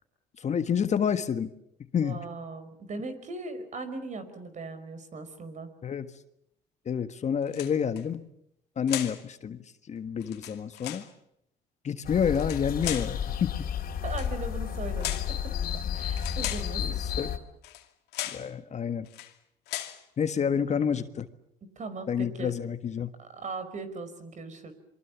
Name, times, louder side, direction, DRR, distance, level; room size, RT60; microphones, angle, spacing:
voice 1, 0.4-1.5 1.9-2.2 5.8-6.1 6.9-8.3 8.8-9.6 9.9-11.0 11.8-13.5 16.8-17.3 18.3-19.1 20.2-21.3 22.1-23.1, left 7 dB, 40° left, 10 dB, 1.6 m, -29 dB
voice 2, 2.0-5.7 12.9-13.0 14.0-15.5 15.9-17.0 21.6-22.6 23.2-24.7, right 3 dB, 45° right, 11 dB, 5.1 m, -39 dB
sound 1, 7.5-8.0 8.9-9.2 10.2-11.1 12.3-13.2 14.1-14.3 15.0-15.3 16.2-16.7 17.6-17.8 18.1-18.5 19.1-19.3 19.7-20.0, left 14 dB, 80° left, 2.6 m, -36 dB
sound 2, 12.0-17.4, left 9 dB, 60° left, 3.6 m, -32 dB
27.0 x 23.5 x 7.2 m, 0.74 s
supercardioid pair, 85°, 17 cm